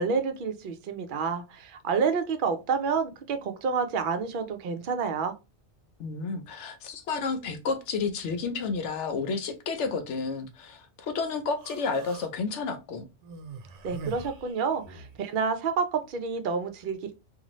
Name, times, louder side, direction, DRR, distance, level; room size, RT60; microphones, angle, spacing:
voice 1, 0.0-5.3 13.8-17.2, right 5 dB, 60° right, 0.6 m, -29 dB
voice 2, 6.0-13.1, left 4 dB, 80° left, 0.9 m, -31 dB
Human voice, 11.6-12.3 13.2-15.2, right 4 dB, 85° right, 0.9 m, -43 dB
2.6 x 2.4 x 3.0 m
omnidirectional pair, 1.2 m